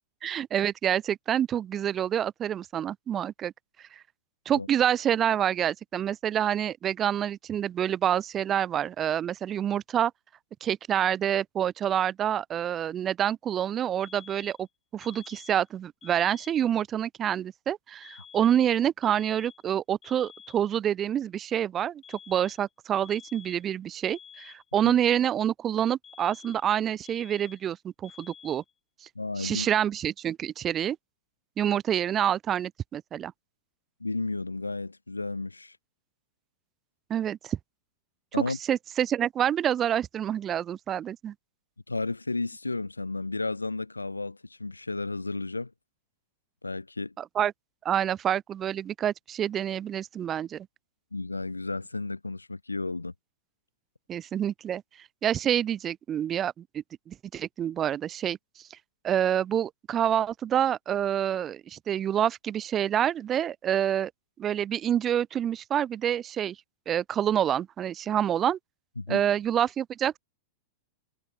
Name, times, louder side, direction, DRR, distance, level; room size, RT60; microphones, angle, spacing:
voice 1, 0.2-3.5 3.9-4.0 4.5-10.1 10.6-14.7 14.9-27.8 28.0-28.6 29.4-31.0 31.6-33.3 37.1-37.6 38.5-41.3 47.2-47.5 47.8-50.7 54.1-54.8 55.2-58.4 59.0-64.1 64.4-66.6 66.9-68.6 69.1-70.2, right 10 dB, 25° right, 0.8 m, -27 dB
sound 1, 14.0-14.7 15.0-15.7 16.0-16.7 18.0-18.7 19.0-19.7 20.0-20.7 22.0-22.7 23.0-23.7 24.0-24.7 26.0-26.7 27.0-27.7 28.0-28.7, left 8 dB, 20° left, 7.4 m, -50 dB
voice 2, 29.1-29.7 34.0-35.8 38.3-38.6 41.9-45.7 46.6-47.1 51.1-53.1 69.0-69.2, left 3 dB, 85° left, 1.6 m, -33 dB
figure-of-eight pair, 95°, 0 cm